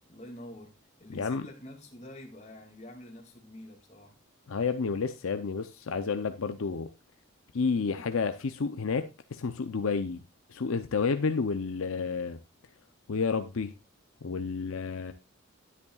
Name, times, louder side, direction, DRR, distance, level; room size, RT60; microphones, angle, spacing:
voice 1, 0.1-0.7 1.0-4.2, left 1 dB, 30° left, 2.3 m, -47 dB
voice 2, 1.1-1.4 4.5-6.9 7.5-10.2 10.5-12.4 13.1-13.7 14.2-15.1, left 5 dB, 75° left, 0.6 m, -30 dB
10.5 x 10.0 x 2.4 m
head